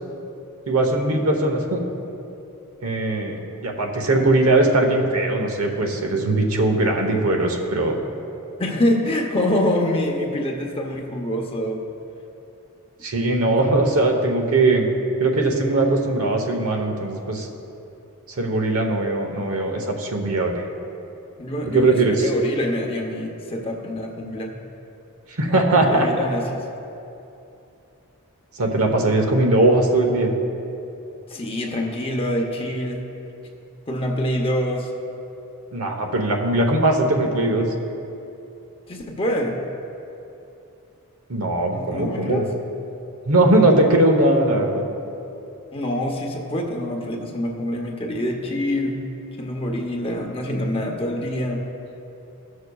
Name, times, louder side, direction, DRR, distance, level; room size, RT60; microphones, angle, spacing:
voice 1, 0.7-1.8 2.8-8.0 13.0-14.9 15.2-17.5 18.4-20.6 21.7-22.1 25.4-26.1 28.6-30.3 35.7-37.7 41.3-42.4 43.3-44.9, right 2 dB, 75° right, 2 dB, 1.0 m, -20 dB
voice 2, 8.6-11.8 13.5-13.8 21.4-24.6 25.7-26.7 31.3-33.0 33.9-34.9 38.9-39.5 41.7-42.5 45.7-49.0 49.4-51.6, left 1 dB, 25° left, 1 dB, 0.8 m, -25 dB
15.5 x 6.4 x 2.3 m, 2.8 s
head